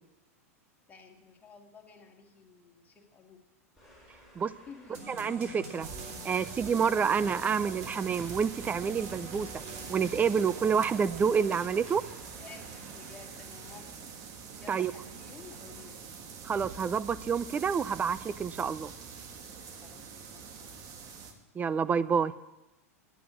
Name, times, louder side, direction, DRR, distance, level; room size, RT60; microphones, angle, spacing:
voice 1, 0.9-3.4 4.7-5.1 12.4-13.9 14.6-16.0 19.8-20.9, left 5 dB, 20° left, 0 dB, 2.4 m, -52 dB
sound 1, 3.8-13.1, equal, ahead, 6.2 m, -57 dB
sound 2, 4.9-12.3, right 2 dB, 70° right, 3.9 m, -47 dB
voice 2, 5.1-5.9 6.2-9.6 9.9-12.0 14.7-14.9 16.4-18.9 21.5-22.3, right 6 dB, 20° right, 17 dB, 0.5 m, -28 dB
sound 3, 5.8-21.3, right 6 dB, 45° right, 1.9 m, -44 dB
9.3 x 8.5 x 9.6 m, 0.95 s
hypercardioid pair, 110°, 8 cm